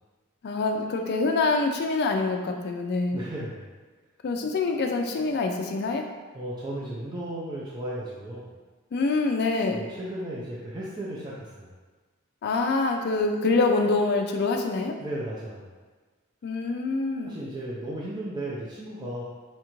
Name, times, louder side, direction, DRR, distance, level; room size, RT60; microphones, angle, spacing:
voice 1, 0.4-3.2 4.2-6.1 8.9-9.8 12.4-14.9 16.4-17.3, left 3 dB, 45° left, 3 dB, 0.3 m, -25 dB
voice 2, 3.1-3.7 6.3-8.5 9.7-11.7 15.0-15.7 17.3-19.2, right 1 dB, 20° right, -6 dB, 0.4 m, -35 dB
4.2 x 2.4 x 3.0 m, 1.3 s
head